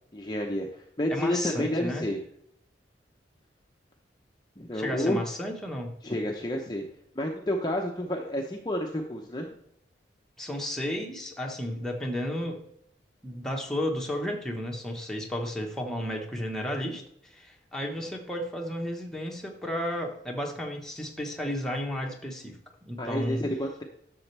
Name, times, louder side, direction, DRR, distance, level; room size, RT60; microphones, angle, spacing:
voice 1, 0.1-2.2 4.6-5.2 6.0-6.9 7.2-9.5 23.0-23.8, left 1 dB, 25° left, 1 dB, 0.8 m, -30 dB
voice 2, 1.1-2.1 4.7-5.9 10.4-12.6 13.2-17.0 17.3-23.4, equal, 5° left, 0 dB, 1.3 m, -33 dB
11.5 x 7.0 x 3.4 m, 0.74 s
head